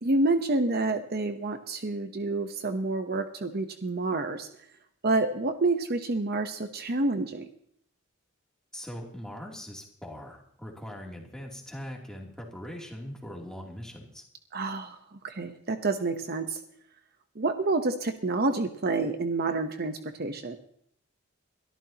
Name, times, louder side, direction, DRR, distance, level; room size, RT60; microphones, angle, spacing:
voice 1, 0.0-4.5 5.0-7.5 14.5-16.6 17.4-20.6, right 2 dB, 50° right, 7 dB, 1.0 m, -28 dB
voice 2, 8.7-14.2, equal, 5° left, -1 dB, 3.0 m, -41 dB
22.5 x 13.5 x 3.0 m, 0.67 s
head